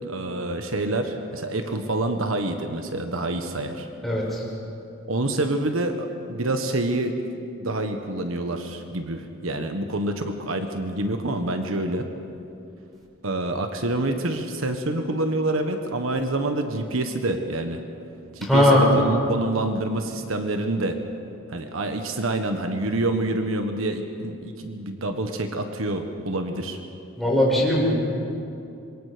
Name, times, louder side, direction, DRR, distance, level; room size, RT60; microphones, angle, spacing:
voice 1, 0.0-3.9 5.1-7.1 7.6-12.1 13.2-17.8 18.3-21.0 21.5-26.8, right 2 dB, 75° right, 6 dB, 1.3 m, -27 dB
voice 2, 4.0-4.4 18.5-19.0 27.2-27.9, left 1 dB, ahead, -5 dB, 6.3 m, -19 dB
26.5 x 23.0 x 5.1 m, 2.7 s
head